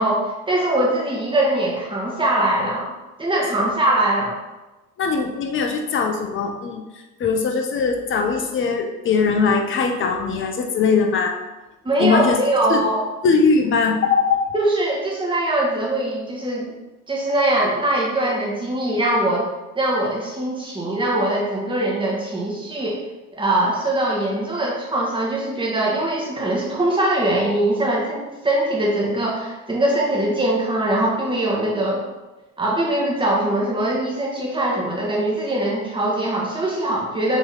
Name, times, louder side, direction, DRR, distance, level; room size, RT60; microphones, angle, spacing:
voice 1, 0.0-2.9 3.2-4.3 11.8-13.0 14.5-16.7 17.1-19.5 19.7-23.0 23.4-32.0 32.6-37.4, right 1 dB, 10° right, -4 dB, 1.3 m, -22 dB
voice 2, 5.0-11.3 12.0-12.4 12.7-12.8 13.2-14.5, left 5 dB, 25° left, 3 dB, 0.6 m, -20 dB
3.9 x 3.0 x 3.9 m, 1.1 s
figure-of-eight pair, 65°, 49 cm